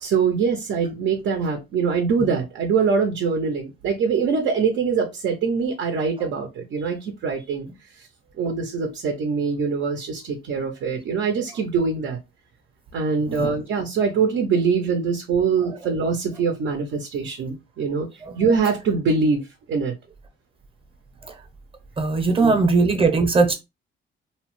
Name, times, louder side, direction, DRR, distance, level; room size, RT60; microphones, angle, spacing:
voice 1, 0.0-7.7 8.0-8.1 8.4-12.2 12.9-18.1 18.4-19.4 19.7-19.9 22.4-22.6, right 5 dB, 65° right, 0.6 m, -23 dB
voice 2, 22.0-23.5, right 4 dB, 25° right, 0.7 m, -19 dB
2.8 x 2.0 x 3.0 m
cardioid pair, 90°, 20 cm